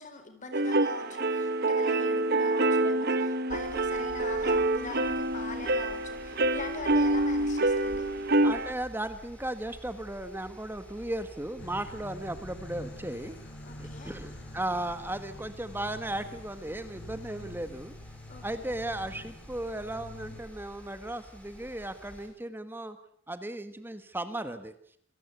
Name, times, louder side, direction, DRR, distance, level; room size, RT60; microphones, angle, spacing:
voice 1, 0.0-8.1 13.6-14.2 18.3-18.7, left 3 dB, 40° left, 8 dB, 4.5 m, -43 dB
sound 1, 0.5-8.7, right 2 dB, 50° right, 1.3 m, -27 dB
Mechanical fan, 3.5-22.3, equal, 5° left, 6.6 m, -50 dB
voice 2, 8.4-13.4 13.8-17.9 18.4-23.0 23.3-24.7, right 1 dB, 10° right, 10 dB, 1.4 m, -36 dB
sound 2, 11.6-20.4, left 1 dB, 60° left, 3.8 m, -47 dB
26.5 x 18.5 x 8.3 m, 0.66 s
head